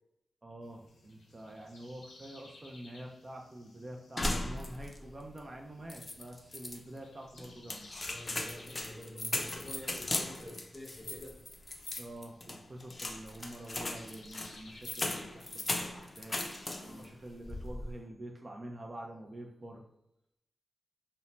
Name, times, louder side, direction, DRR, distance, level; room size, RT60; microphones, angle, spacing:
voice 1, 0.4-7.9 12.0-19.8, right 1 dB, 40° right, 1 dB, 0.4 m, -47 dB
sound 1, 0.6-17.8, left 2 dB, 90° left, 0.5 m, -59 dB
sound 2, 4.2-5.1 5.4-5.5 5.9-6.8 7.4-17.1 17.4-17.9, left 2 dB, 40° left, 0.4 m, -38 dB
voice 2, 8.1-11.3 16.8-17.1, left 1 dB, 20° left, -1 dB, 0.9 m, -47 dB
2.6 x 2.1 x 3.1 m, 0.82 s
cardioid pair, 55°, 0 cm